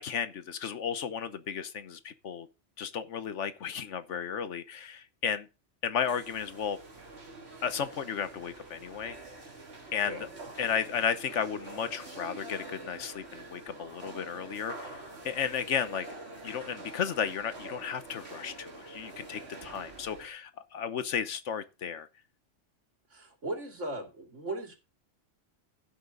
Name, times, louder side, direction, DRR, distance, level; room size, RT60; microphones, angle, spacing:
voice 1, 0.0-2.5 2.8-5.5 5.8-6.8 7.6-9.2 9.9-10.3 10.6-15.0 15.2-16.1 16.4-22.1, left 7 dB, 75° left, 1.3 m, -34 dB
sound 1, 6.0-20.3, right 2 dB, 60° right, 2.6 m, -46 dB
voice 2, 23.1-24.8, right 1 dB, 85° right, 2.9 m, -37 dB
15.5 x 6.1 x 3.9 m
omnidirectional pair, 1.2 m